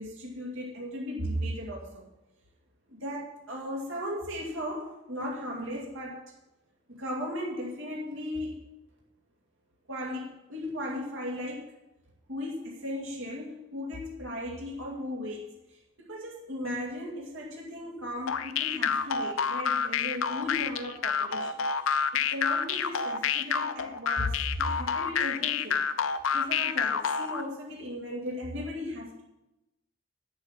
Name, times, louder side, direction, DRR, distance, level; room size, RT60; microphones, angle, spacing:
voice 1, 0.0-2.1 2.9-6.2 6.9-8.7 9.9-11.6 12.3-29.2, left 1 dB, 85° right, -3 dB, 2.4 m, -36 dB
sound 1, 18.3-27.4, left 6 dB, 90° left, 0.6 m, -28 dB
9.0 x 8.7 x 6.6 m, 0.95 s
head